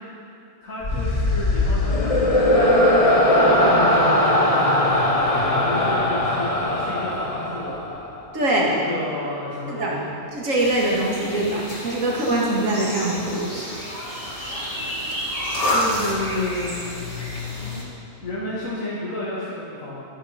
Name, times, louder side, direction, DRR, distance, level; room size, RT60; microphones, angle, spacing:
voice 1, 0.6-2.7 3.2-7.8 8.7-10.1 15.5-16.7 18.2-20.1, left 2 dB, 85° left, -8 dB, 2.1 m, -31 dB
sound 1, 0.8-8.2, left 1 dB, 30° left, 1.0 m, -19 dB
voice 2, 8.3-8.7 9.7-9.9 10.3-13.5, right 1 dB, 75° right, -4 dB, 2.3 m, -23 dB
sound 2, 10.6-17.8, left 1 dB, 45° left, 2.5 m, -29 dB
13.0 x 9.9 x 5.1 m, 2.6 s
omnidirectional pair, 1.4 m